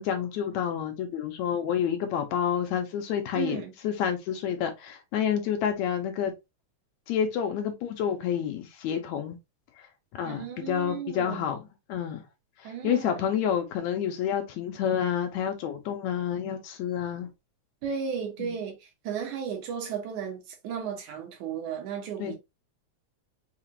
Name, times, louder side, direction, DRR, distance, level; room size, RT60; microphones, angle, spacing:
voice 1, 0.0-6.3 7.1-9.4 9.8-9.9 10.1-12.2 12.6-17.3 18.4-18.6 22.2-22.4, left 9 dB, 80° left, 1.9 m, -29 dB
voice 2, 3.3-3.7 10.2-11.5 12.6-13.2 17.8-18.8 19.0-22.4, right 7 dB, 75° right, 2.6 m, -34 dB
5.7 x 2.4 x 2.9 m
omnidirectional pair, 3.5 m